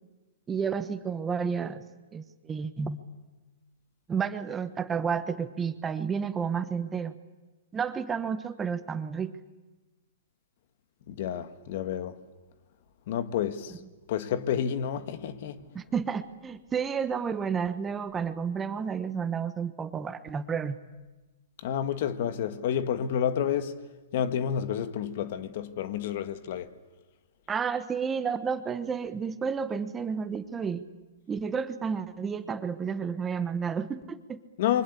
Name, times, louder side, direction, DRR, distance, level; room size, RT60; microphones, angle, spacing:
voice 1, 0.5-1.8 2.1-3.0 4.1-7.1 7.7-9.3 15.7-20.8 27.5-30.8 31.3-34.4, right 6 dB, 15° right, 1.1 m, -31 dB
voice 2, 11.1-12.1 13.1-13.7 14.1-15.6 21.6-23.7 24.1-26.7 34.6-34.8, left 9 dB, 55° left, 1.7 m, -29 dB
28.5 x 24.0 x 8.5 m
hypercardioid pair, 145°, 0 cm